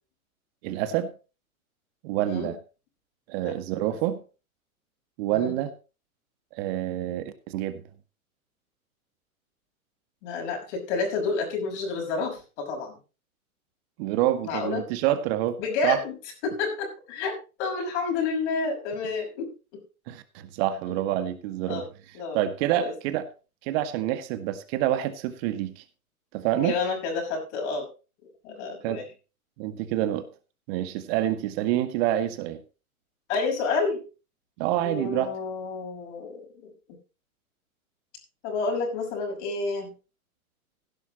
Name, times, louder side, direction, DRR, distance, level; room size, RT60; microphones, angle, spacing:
voice 1, 0.6-1.1 2.0-2.6 3.3-4.2 5.2-5.7 6.5-7.8 14.0-15.6 15.8-16.0 20.1-21.8 22.3-23.2 23.6-25.8 26.3-26.7 28.8-29.0 29.6-30.2 30.7-32.6 34.6-35.4, right 12 dB, 45° right, 1.9 m, -27 dB
voice 2, 10.2-13.0 14.4-14.8 15.6-16.1 16.4-19.5 20.9-21.0 21.7-21.9 22.1-22.4 22.8-22.9 26.6-27.9 28.4-29.0 33.3-34.0 34.8-36.7 38.4-39.9, left 4 dB, 50° left, 6.0 m, -29 dB
16.5 x 11.0 x 3.0 m
hypercardioid pair, 110°, 43 cm